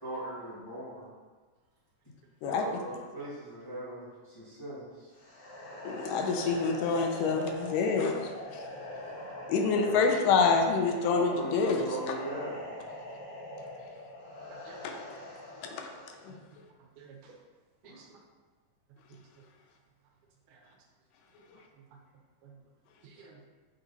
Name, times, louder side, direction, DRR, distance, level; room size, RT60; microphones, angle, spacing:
voice 1, 0.0-1.1 2.4-5.1 9.7-10.0 11.3-12.9 17.8-18.0, right 1 dB, 20° left, -10 dB, 0.6 m, -40 dB
sound 1, 5.2-16.3, left 1 dB, 60° left, 2.0 m, -42 dB
voice 2, 5.9-8.7 9.5-11.8 14.8-14.9 15.6-15.9 16.2-16.4, left 4 dB, 85° left, 3 dB, 2.3 m, -27 dB
voice 3, 14.5-14.8 16.3-16.6 17.0-17.4 17.8-18.2 19.1-19.2 20.5-20.7 22.4-22.6 23.0-23.4, right 5 dB, 75° right, 1 dB, 2.2 m, -53 dB
7.4 x 3.9 x 4.0 m, 1.4 s
omnidirectional pair, 3.8 m